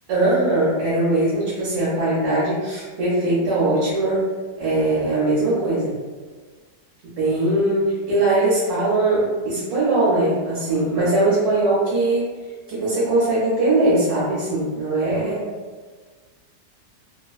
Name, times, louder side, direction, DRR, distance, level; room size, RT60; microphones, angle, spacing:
voice 1, 0.1-4.3 4.6-5.9 7.2-12.3 12.7-15.5, right 2 dB, 65° right, -8 dB, 1.1 m, -20 dB
3.0 x 2.1 x 2.3 m, 1.4 s
omnidirectional pair, 1.9 m